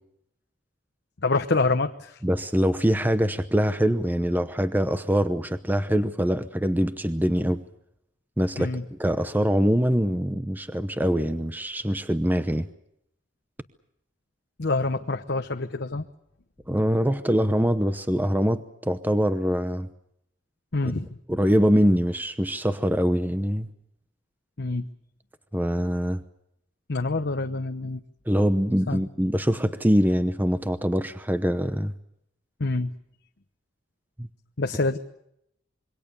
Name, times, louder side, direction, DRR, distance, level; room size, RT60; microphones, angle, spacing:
voice 1, 1.2-2.2 8.6-8.8 14.6-16.0 20.7-21.1 24.6-24.9 26.9-28.0 28.9-29.0 32.6-32.9 34.6-35.0, left 3 dB, 60° left, 6 dB, 1.0 m, -26 dB
voice 2, 2.2-7.6 8.4-8.7 9.0-12.7 16.7-19.9 20.8-20.9 21.3-23.7 25.5-26.2 28.3-31.9 34.2-34.3, equal, 10° right, 11 dB, 0.9 m, -23 dB
26.5 x 23.5 x 6.9 m, 0.78 s
head